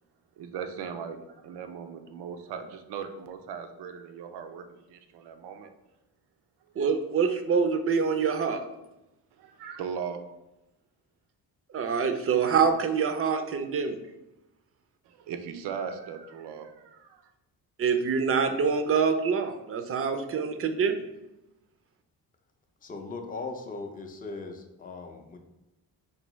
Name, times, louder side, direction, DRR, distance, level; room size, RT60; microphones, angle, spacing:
voice 1, 0.4-5.7 6.8-6.9 9.3-10.2 15.0-17.3, right 7 dB, 90° right, 7 dB, 0.5 m, -39 dB
voice 2, 6.8-8.6 11.7-14.0 17.8-21.0, right 6 dB, 35° right, 8 dB, 0.4 m, -25 dB
voice 3, 22.8-25.4, left 3 dB, 20° left, 4 dB, 0.4 m, -39 dB
4.6 x 2.6 x 3.0 m, 0.94 s
cardioid pair, 110°, 40 cm